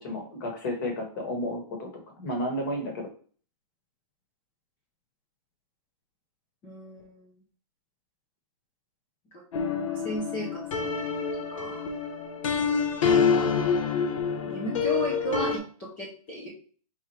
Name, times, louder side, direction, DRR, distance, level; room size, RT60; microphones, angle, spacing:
voice 1, 0.0-1.9 2.2-3.1, left 1 dB, 35° left, 3 dB, 1.2 m, -32 dB
voice 2, 6.6-7.3 9.3-9.4 9.9-11.1 11.5-11.9 14.5-16.5, right 1 dB, 10° left, -4 dB, 0.4 m, -35 dB
sound 1, 9.5-15.6, left 6 dB, 55° left, 0.7 m, -27 dB
4.3 x 3.6 x 3.1 m, 0.44 s
hypercardioid pair, 180°, 19 cm